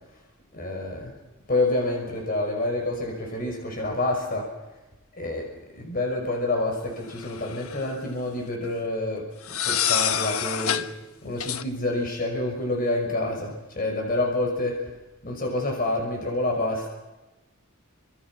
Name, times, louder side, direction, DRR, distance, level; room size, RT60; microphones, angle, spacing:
voice 1, 0.5-1.1 1.5-4.5 5.1-5.5 5.7-10.9 11.2-14.8 15.2-16.9, left 2 dB, 45° left, 2 dB, 5.7 m, -28 dB
sound 1, 7.2-7.9 9.4-10.9 11.4-11.6, left 9 dB, 90° left, 1.2 m, -26 dB
28.5 x 26.0 x 6.1 m, 1.1 s
head